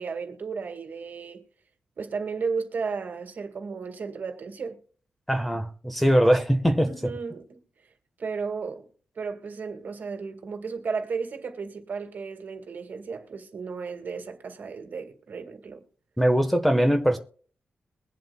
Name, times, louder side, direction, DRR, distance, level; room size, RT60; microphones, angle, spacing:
voice 1, 0.0-1.4 2.0-4.8 6.8-7.6 8.2-8.9 9.2-15.8, right 5 dB, 60° right, 1.9 m, -34 dB
voice 2, 5.3-6.9 16.2-17.2, equal, 5° left, 1.2 m, -21 dB
22.0 x 7.7 x 2.3 m
cardioid pair, 95°, 4 cm